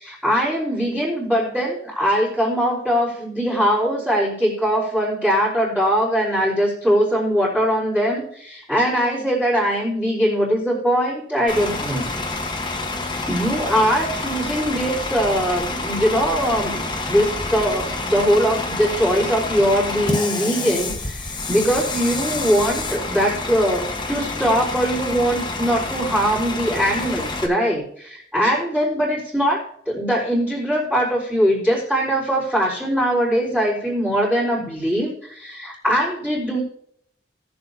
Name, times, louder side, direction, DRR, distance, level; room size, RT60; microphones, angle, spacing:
voice 1, 0.0-12.1 12.3-12.5 13.3-36.6, equal, 5° right, -12 dB, 4.0 m, -21 dB
Bus / Idling, 11.5-27.5, left 2 dB, 25° left, 1.1 m, -28 dB
18.5 x 7.0 x 2.8 m, 0.65 s
head